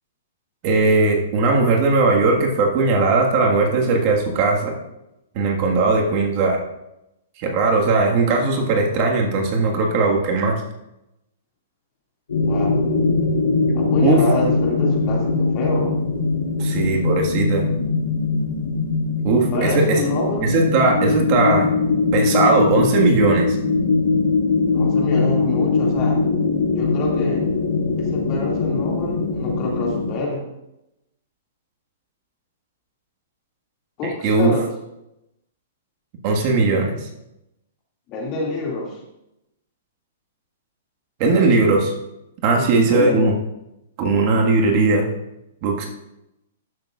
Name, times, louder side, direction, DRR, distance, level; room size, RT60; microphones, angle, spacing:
voice 1, 0.6-4.7 5.3-6.6 7.4-10.6 14.0-14.2 16.6-17.6 19.2-20.0 20.4-21.8 22.1-23.6 34.0-34.5 36.2-37.1 41.2-41.9 42.4-43.3 44.0-45.1 45.6-45.9, right 3 dB, 45° right, 0 dB, 1.7 m, -18 dB
sound 1, 12.3-30.1, left 3 dB, 85° left, 3.0 m, -21 dB
voice 2, 12.5-12.8 13.7-15.9 19.5-20.5 24.7-26.2 26.8-27.5 28.0-30.5 34.0-34.6 38.1-39.0 42.6-43.2, left 2 dB, 35° left, -1 dB, 2.3 m, -27 dB
13.0 x 6.7 x 2.5 m, 0.87 s
hypercardioid pair, 130°, 0 cm